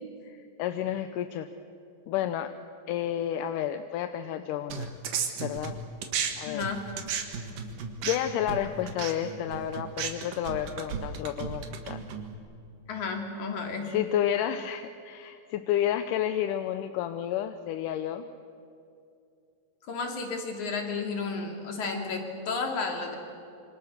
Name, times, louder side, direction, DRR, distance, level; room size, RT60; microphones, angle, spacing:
voice 1, 0.2-1.5 2.1-2.5 2.9-4.9 5.4-5.8 6.3-6.6 8.0-12.0 13.9-18.3, left 11 dB, 75° left, 9 dB, 2.2 m, -31 dB
sound 1, 4.7-6.3 6.6-12.3, right 6 dB, 70° right, 3.3 m, -34 dB
voice 2, 6.5-6.8 12.9-13.9 19.8-23.2, left 4 dB, 60° left, 3 dB, 3.9 m, -32 dB
27.0 x 25.5 x 6.5 m, 2.5 s
omnidirectional pair, 4.1 m